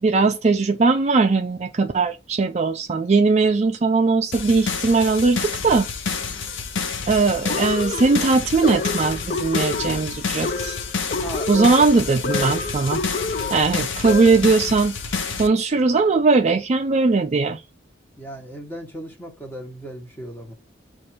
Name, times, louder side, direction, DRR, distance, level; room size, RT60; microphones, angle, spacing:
voice 1, 0.0-5.9 7.1-10.8 11.5-13.0 13.5-15.0 15.4-17.6, right 3 dB, 35° right, 0.4 m, -19 dB
sound 1, 4.3-15.5, left 5 dB, 85° left, 0.8 m, -29 dB
sound 2, 7.5-14.5, left 4 dB, 45° left, 0.4 m, -29 dB
voice 2, 11.2-11.8 13.4-13.6 18.2-20.5, right 1 dB, 10° left, 1.2 m, -35 dB
4.8 x 2.5 x 4.2 m
head